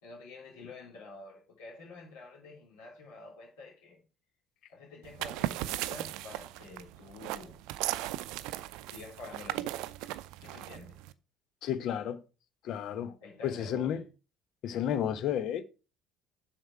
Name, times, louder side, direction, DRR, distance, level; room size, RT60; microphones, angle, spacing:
voice 1, 0.0-4.0 4.7-7.6 8.8-9.9 10.4-11.0 13.2-14.0, left 3 dB, 75° left, 3.5 m, -48 dB
sound 1, 5.0-11.1, right 15 dB, 65° right, 0.5 m, -37 dB
voice 2, 11.6-12.2 12.6-13.2 13.4-14.0 14.6-15.6, left 9 dB, 55° left, 1.0 m, -32 dB
7.8 x 6.1 x 5.0 m
figure-of-eight pair, 60°, 0 cm